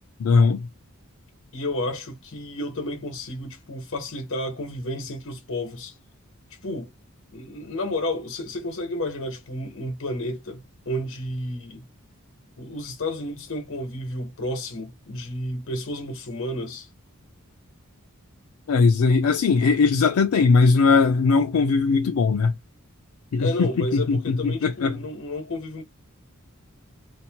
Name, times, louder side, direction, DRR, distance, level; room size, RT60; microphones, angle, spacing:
voice 1, 0.2-0.7 18.7-22.5 23.3-25.0, left 4 dB, 85° left, 0.4 m, -19 dB
voice 2, 1.5-5.9 6.6-6.9 7.3-11.8 12.6-16.9 23.4-25.8, left 1 dB, 60° left, 1.0 m, -31 dB
2.7 x 2.1 x 2.8 m
head